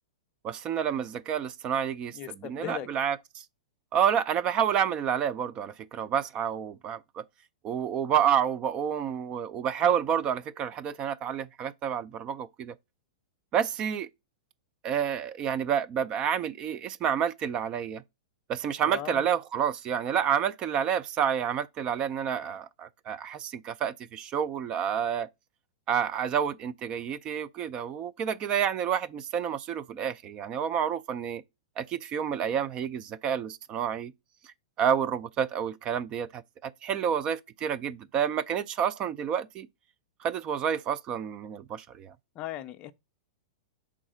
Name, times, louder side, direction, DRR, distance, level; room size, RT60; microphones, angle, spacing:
voice 1, 0.4-3.4 3.9-7.2 7.6-12.7 13.5-14.1 14.8-18.0 18.5-25.3 25.9-31.4 31.8-34.1 34.8-39.7 40.2-42.1, right 8 dB, 30° right, 0.4 m, -29 dB
voice 2, 2.1-2.9 18.9-19.3 42.4-42.9, left 12 dB, 35° left, 0.5 m, -38 dB
4.6 x 3.7 x 5.5 m
hypercardioid pair, 105°, 3 cm